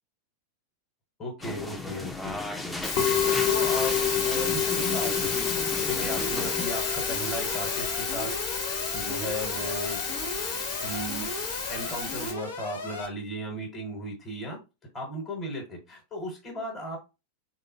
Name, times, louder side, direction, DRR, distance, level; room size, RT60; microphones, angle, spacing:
voice 1, 1.2-2.4 2.9-3.2 3.4-5.3 5.8-10.0 10.8-11.3 11.7-14.6 14.9-17.0, equal, 20° left, 1 dB, 1.2 m, -36 dB
sound 1, 1.4-6.7, left 2 dB, 5° left, 0.5 m, -36 dB
Musical instrument, 2.8-12.3, left 6 dB, 45° left, 1.2 m, -28 dB
Alarm, 6.1-13.1, left 2 dB, 70° left, 0.8 m, -37 dB
3.6 x 2.3 x 2.8 m, 0.27 s
figure-of-eight pair, 90°, 0 cm